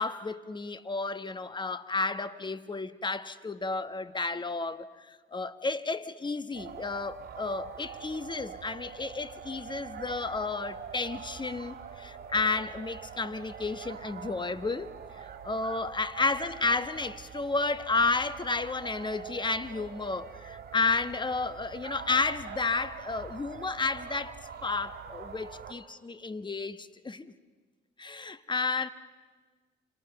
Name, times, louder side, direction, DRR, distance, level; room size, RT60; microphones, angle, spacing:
voice 1, 0.0-14.9 15.2-24.4 24.6-27.3 28.0-28.9, left 3 dB, 25° left, 1.2 m, -32 dB
sound 1, 6.5-25.7, right 7 dB, 50° right, 2.7 m, -44 dB
28.5 x 26.0 x 6.9 m
cardioid pair, 90°, 20 cm